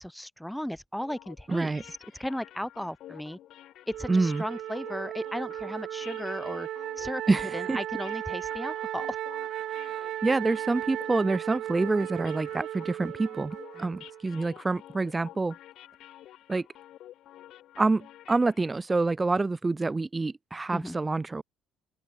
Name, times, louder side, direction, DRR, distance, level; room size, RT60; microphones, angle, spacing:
voice 1, 0.0-3.4 3.9-6.7 7.0-7.2 7.5-9.2 13.8-14.0 20.7-21.0, equal, ahead, 1.2 m, -36 dB
sound 1, 1.0-18.9, left 13 dB, 70° left, 5.4 m, -50 dB
voice 2, 1.5-1.8 4.1-4.4 7.3-7.8 10.2-15.6 16.5-16.6 17.8-21.4, right 3 dB, 20° right, 1.2 m, -27 dB
Wind instrument woodwind instrument, 3.9-14.3, right 12 dB, 65° right, 0.8 m, -36 dB
open air
cardioid pair, 105°, 0 cm